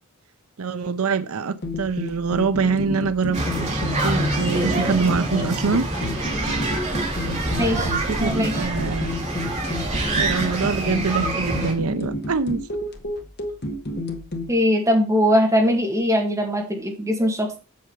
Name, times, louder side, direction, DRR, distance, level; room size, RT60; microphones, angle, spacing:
voice 1, 0.6-5.9 7.4-9.1 10.1-12.6, right 5 dB, 80° right, 0.6 m, -25 dB
sound 1, 1.6-14.5, left 1 dB, 50° left, 1.4 m, -31 dB
sound 2, 3.3-11.7, right 1 dB, 30° right, 2.9 m, -26 dB
voice 2, 7.6-8.5 14.5-17.6, equal, 15° right, 2.1 m, -21 dB
7.7 x 6.7 x 5.2 m
head